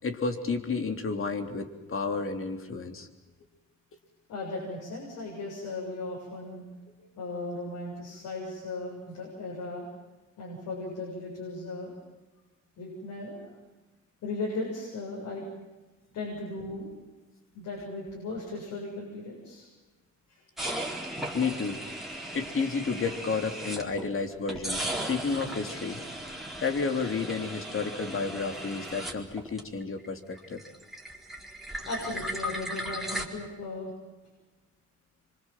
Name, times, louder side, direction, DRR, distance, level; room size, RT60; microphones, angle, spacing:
voice 1, 0.0-3.1 21.3-21.8 22.3-26.0 26.6-30.6, left 4 dB, 45° left, 6 dB, 3.4 m, -31 dB
voice 2, 4.3-6.6 7.0-9.9 10.4-11.9 12.8-13.5 14.2-15.4 16.1-16.9 17.5-19.7 20.3-21.0 31.9-33.9, left 2 dB, 80° left, -3 dB, 7.8 m, -37 dB
sound 1, 20.6-24.1 24.5-30.1 30.3-33.2, right 1 dB, ahead, 4.3 m, -37 dB
25.5 x 25.0 x 7.7 m, 1.2 s
cardioid pair, 90°, 30 cm